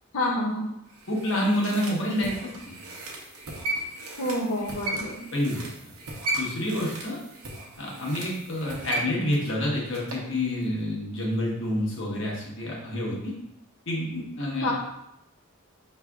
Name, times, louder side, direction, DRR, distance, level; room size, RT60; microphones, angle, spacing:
voice 1, 0.1-0.7 4.2-5.3 14.6-14.7, left 1 dB, 80° left, -4 dB, 0.6 m, -28 dB
sound 1, 0.9-10.3 10.6-10.7, right 1 dB, 85° right, 0.9 m, -36 dB
voice 2, 1.1-2.3 2.7-2.8 5.3-5.7 6.4-7.2 7.8-13.3 13.9-14.7, left 1 dB, 60° left, -3 dB, 1.2 m, -28 dB
5.6 x 3.2 x 2.4 m, 0.83 s
head